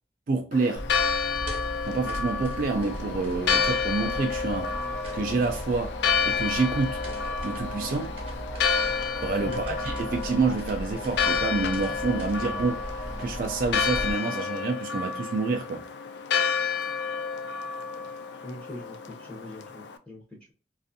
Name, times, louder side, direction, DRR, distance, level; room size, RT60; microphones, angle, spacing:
voice 1, 0.3-0.8 1.8-4.7 5.1-6.0 6.3-7.0 7.4-8.1 9.2-12.8 13.2-15.8, right 3 dB, 50° right, 0.3 m, -28 dB
Church bell, 0.5-20.0, left 6 dB, 80° left, 0.3 m, -30 dB
sound 1, 0.8-14.1, equal, 30° right, 0.7 m, -38 dB
sound 2, 2.7-14.5, equal, 40° left, 0.6 m, -41 dB
voice 2, 9.4-9.8 18.4-20.5, left 1 dB, 5° left, 0.6 m, -42 dB
2.5 x 2.4 x 2.5 m
head